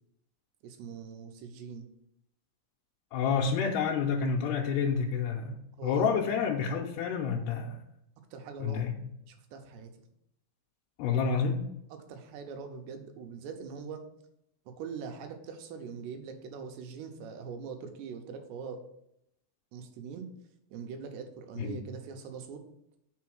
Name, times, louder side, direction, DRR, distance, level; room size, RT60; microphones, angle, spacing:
voice 1, 0.6-1.9 5.8-6.3 8.3-8.9 9.3-9.9 11.9-14.0 14.7-18.8 19.7-20.3 20.7-22.6, right 6 dB, 85° right, 5 dB, 3.0 m, -42 dB
voice 2, 3.1-7.8 8.6-9.0 11.0-11.6 21.6-21.8, left 6 dB, 85° left, -1 dB, 2.7 m, -29 dB
6.7 x 4.7 x 6.2 m, 0.79 s
omnidirectional pair, 4.7 m